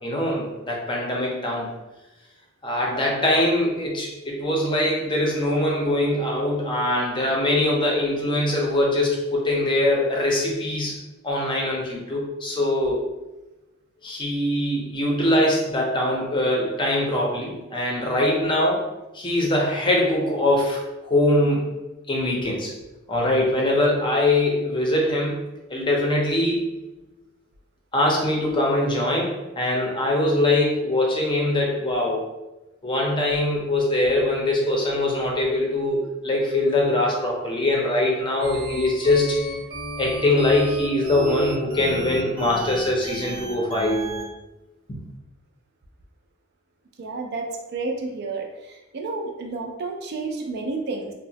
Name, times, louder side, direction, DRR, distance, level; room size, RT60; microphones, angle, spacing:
voice 1, 0.0-1.7 2.6-11.0 11.2-13.0 14.0-18.8 19.1-21.7 22.1-22.7 23.1-25.4 25.7-26.7 27.9-32.3 32.8-39.4 40.0-44.1, left 1 dB, 25° left, -2 dB, 0.5 m, -22 dB
sound 1, 38.4-44.2, right 1 dB, 25° right, 0.7 m, -34 dB
voice 2, 47.0-51.1, right 3 dB, 55° right, 2 dB, 0.4 m, -31 dB
2.8 x 2.0 x 2.7 m, 1.0 s
head